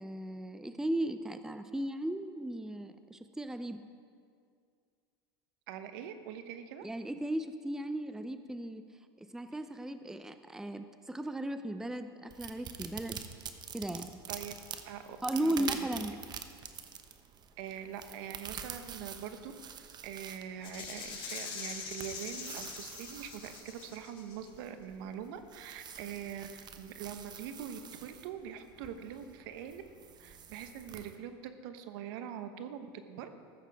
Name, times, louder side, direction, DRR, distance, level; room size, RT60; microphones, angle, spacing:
voice 1, 0.0-3.8 6.8-8.8 9.2-13.2 13.7-14.2 15.2-16.1, right 1 dB, 5° right, 9 dB, 0.6 m, -36 dB
voice 2, 5.7-6.9 14.3-14.5 14.8-15.9 17.6-29.8 30.2-33.3, right 9 dB, 65° right, 9 dB, 1.1 m, -43 dB
sound 1, 12.3-31.2, right 7 dB, 35° right, 1.0 m, -47 dB
Rattle (instrument), 20.6-24.5, left 5 dB, 45° left, 3.5 m, -43 dB
14.5 x 13.0 x 3.5 m, 2.2 s
hypercardioid pair, 90°, 13 cm